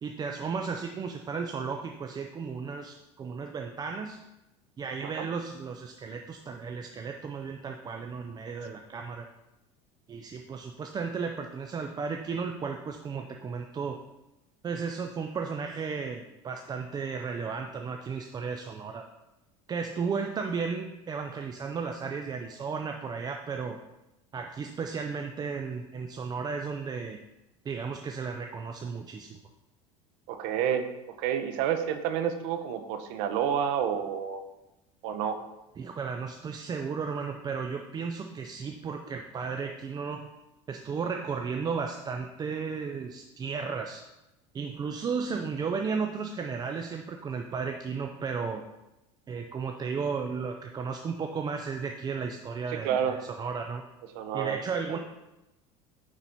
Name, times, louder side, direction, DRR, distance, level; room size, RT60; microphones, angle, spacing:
voice 1, 0.0-4.2 4.8-9.3 10.1-14.0 14.6-19.0 19.7-23.8 24.3-27.2 27.6-29.4 35.8-40.3 40.7-44.0 44.5-48.6 49.3-53.8 54.3-55.0, right 5 dB, 25° right, 4 dB, 0.5 m, -34 dB
voice 2, 30.3-34.4 35.0-35.4 52.8-53.2 54.1-54.6 54.9-55.0, right 8 dB, 75° right, 8 dB, 0.9 m, -29 dB
9.8 x 4.2 x 4.5 m, 0.97 s
supercardioid pair, 125°, 16 cm